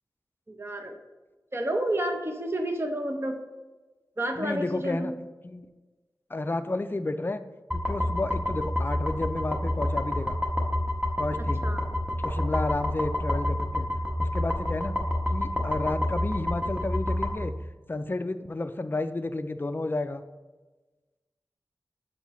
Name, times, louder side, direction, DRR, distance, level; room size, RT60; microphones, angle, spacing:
voice 1, 0.5-1.0 1.5-3.4 4.2-5.2 11.6-11.8, right 1 dB, 35° right, 4 dB, 0.7 m, -30 dB
voice 2, 4.4-5.1 5.4-5.7 6.3-7.4 7.7-10.4 11.2-11.7 12.2-13.9 14.2-15.0 15.3-17.5 17.9-20.2, left 2 dB, 30° left, 10 dB, 0.3 m, -31 dB
sound 1, 7.7-17.4, left 1 dB, 10° right, 1.0 m, -28 dB
7.2 x 4.6 x 3.0 m, 1.2 s
wide cardioid pair, 65°, 7 cm